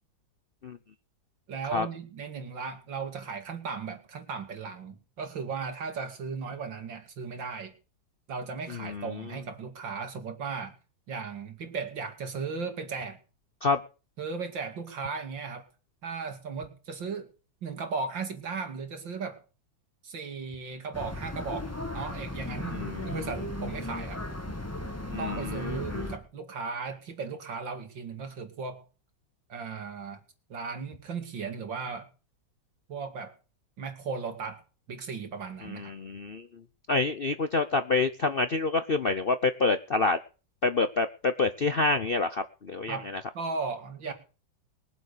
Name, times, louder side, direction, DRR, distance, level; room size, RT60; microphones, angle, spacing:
voice 1, 1.5-7.7 8.3-10.7 11.1-13.2 14.2-15.7 16.0-17.3 17.6-19.4 20.0-24.2 25.2-28.8 29.5-30.2 30.5-32.1 32.9-33.3 33.8-34.6 34.9-35.9 42.9-43.1 43.3-44.1, right 5 dB, 75° right, 6 dB, 3.1 m, -36 dB
voice 2, 8.7-9.2 13.6-13.8 22.7-23.2 25.1-26.1 35.6-36.5 36.9-40.2 40.6-43.0, left 3 dB, 50° left, 11 dB, 0.7 m, -27 dB
sound 1, 20.9-26.2, left 1 dB, 10° left, 1.7 m, -36 dB
21.5 x 7.8 x 6.7 m, 0.35 s
omnidirectional pair, 2.0 m